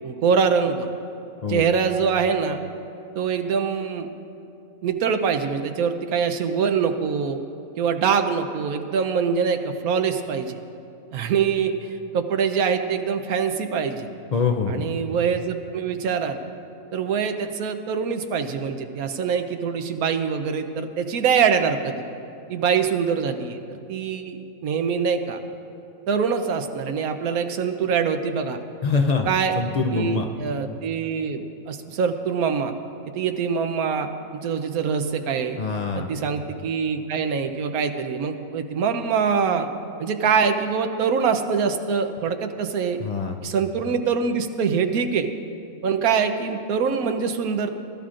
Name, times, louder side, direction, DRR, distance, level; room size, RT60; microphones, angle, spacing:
voice 1, 0.0-0.9 1.5-2.6 3.1-4.1 4.8-7.4 7.8-10.6 11.1-14.1 14.7-16.4 16.9-22.0 22.5-25.4 26.1-28.6 29.3-29.6 29.9-32.7 33.1-35.6 36.1-39.7 40.0-43.0 43.4-45.3 45.8-47.7, right 6 dB, 90° right, 7 dB, 1.2 m, -24 dB
voice 2, 14.3-14.9 28.8-29.3 29.6-30.3 35.6-36.1 42.3-42.4 43.0-43.4, left 4 dB, 60° left, 3 dB, 0.4 m, -24 dB
20.5 x 13.0 x 2.5 m, 2.7 s
omnidirectional pair, 1.5 m